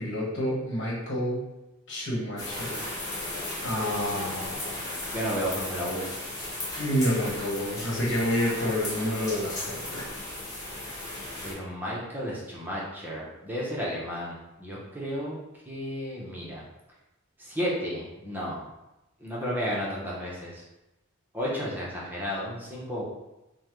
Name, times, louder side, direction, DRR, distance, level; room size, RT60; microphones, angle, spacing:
voice 1, 0.0-1.4 1.9-2.9 3.6-4.7 6.8-10.1, equal, 60° left, -4 dB, 1.2 m, -29 dB
sound 1, 2.4-11.5, left 1 dB, 15° left, 1.0 m, -35 dB
voice 2, 5.0-6.1 11.4-15.4 15.7-16.6 17.4-18.7 19.2-20.6 21.3-23.0, equal, 10° right, -6 dB, 0.7 m, -33 dB
5.4 x 2.2 x 3.1 m, 0.97 s
head